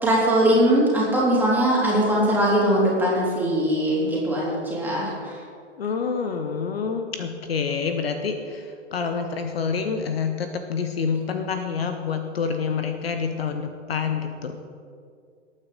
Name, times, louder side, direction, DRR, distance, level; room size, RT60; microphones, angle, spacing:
voice 1, 0.0-5.3, right 1 dB, 5° right, -5 dB, 3.4 m, -21 dB
voice 2, 5.8-14.6, left 5 dB, 55° left, 7 dB, 1.0 m, -27 dB
18.5 x 9.1 x 3.9 m, 2.3 s
figure-of-eight pair, 115°, 36 cm